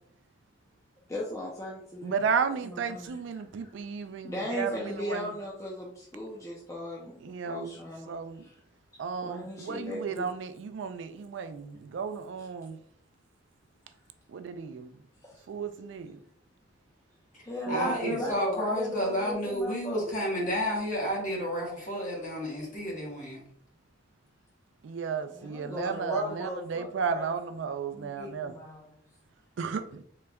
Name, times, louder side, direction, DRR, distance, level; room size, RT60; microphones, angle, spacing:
voice 1, 1.1-2.2 2.6-3.1 3.4-3.7 4.2-8.1 8.4-8.5 9.2-10.3 15.2-15.4 17.4-20.1 25.3-27.3 27.9-29.0, left 1 dB, 15° left, 0.5 m, -37 dB
voice 2, 2.0-5.3 7.2-7.8 8.1-8.5 9.0-12.8 14.3-15.0 15.5-16.2 17.7-18.2 24.8-28.5 29.6-29.8, right 6 dB, 65° right, 0.3 m, -33 dB
voice 3, 17.7-23.4, equal, 40° left, 1.3 m, -31 dB
3.9 x 3.3 x 2.3 m
head